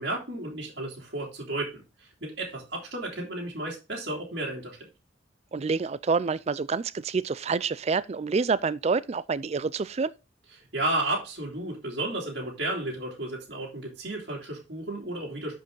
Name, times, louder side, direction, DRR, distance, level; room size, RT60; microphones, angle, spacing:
voice 1, 0.0-4.9 10.6-15.6, right 2 dB, 55° right, 3.0 m, -33 dB
voice 2, 5.5-10.1, right 4 dB, 35° right, 0.3 m, -27 dB
11.0 x 5.2 x 3.8 m
head